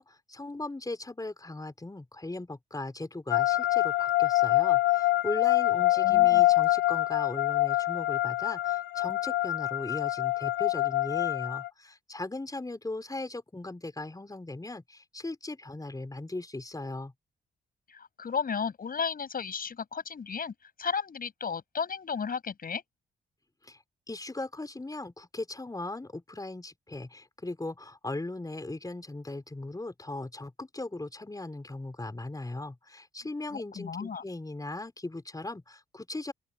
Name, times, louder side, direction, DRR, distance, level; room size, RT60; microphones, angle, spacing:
voice 1, 0.0-17.1 23.6-23.8 24.1-36.3, left 2 dB, 20° left, 4.8 m, -38 dB
sound 1, 3.3-11.7, left 17 dB, 80° left, 0.7 m, -25 dB
voice 2, 5.7-6.6 17.9-22.8 33.5-34.2, left 6 dB, 55° left, 6.8 m, -34 dB
open air
supercardioid pair, 50°, 18 cm